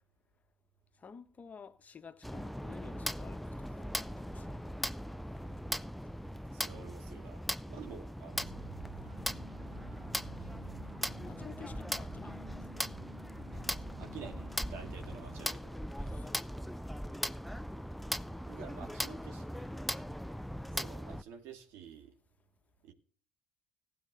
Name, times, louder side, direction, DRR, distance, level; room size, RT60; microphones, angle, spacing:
voice 1, 1.0-4.7 6.5-7.0 9.0-9.4 11.1-12.5 16.0-16.5, left 6 dB, 35° left, 1.4 m, -53 dB
sound 1, 2.2-21.2, equal, ahead, 0.5 m, -39 dB
voice 2, 6.5-8.6 13.5-13.7 14.0-15.8 18.5-19.7 20.7-22.1 22.8-22.9, right 7 dB, 70° right, 2.4 m, -50 dB
sound 2, 8.3-15.6, right 5 dB, 85° right, 5.9 m, -52 dB
15.0 x 8.7 x 4.0 m
hypercardioid pair, 65°, 4 cm